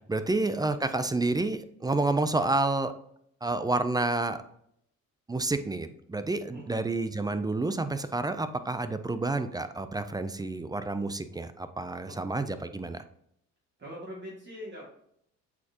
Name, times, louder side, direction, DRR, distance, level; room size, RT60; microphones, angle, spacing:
voice 1, 0.1-2.9 3.4-4.4 5.3-13.0, right 2 dB, 15° right, 10 dB, 0.4 m, -29 dB
voice 2, 6.5-6.9 12.1-12.2 13.8-14.8, equal, 35° right, -5 dB, 2.2 m, -43 dB
8.1 x 4.4 x 2.9 m, 0.70 s
cardioid pair, 105°, 30 cm